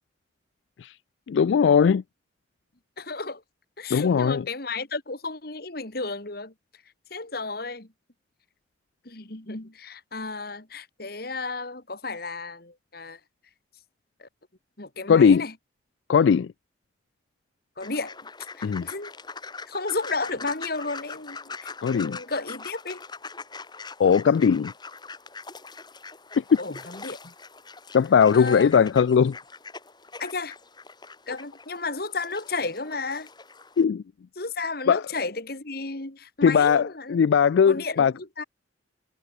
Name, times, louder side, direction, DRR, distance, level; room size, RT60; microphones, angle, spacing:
voice 1, 1.3-2.0 3.9-4.5 15.1-15.5 16.1-16.5 18.6-18.9 21.8-22.2 24.0-24.7 26.3-26.6 27.9-29.4 33.8-34.0 34.9-35.0 36.4-38.1, left 6 dB, 75° left, 0.3 m, -19 dB
voice 2, 3.0-3.4 3.8-6.5 7.1-7.9 9.0-13.2 14.2-14.3 14.8-15.5 17.8-18.2 18.5-19.1 19.7-23.0 26.6-27.3 28.3-28.7 30.2-30.6 31.3-33.3 34.4-37.2 37.7-38.4, left 3 dB, 55° left, 2.5 m, -33 dB
sound 1, 17.8-33.8, left 4 dB, 25° left, 4.9 m, -42 dB
head